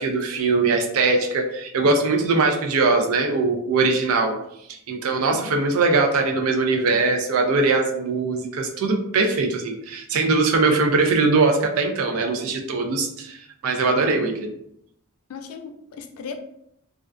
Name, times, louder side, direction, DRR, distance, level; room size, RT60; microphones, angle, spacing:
voice 1, 0.0-4.4 4.7-13.4 13.6-14.5, right 3 dB, 80° right, 3 dB, 0.4 m, -21 dB
voice 2, 15.3-16.4, left 5 dB, 85° left, 6 dB, 0.4 m, -37 dB
2.3 x 2.2 x 2.4 m, 0.74 s
head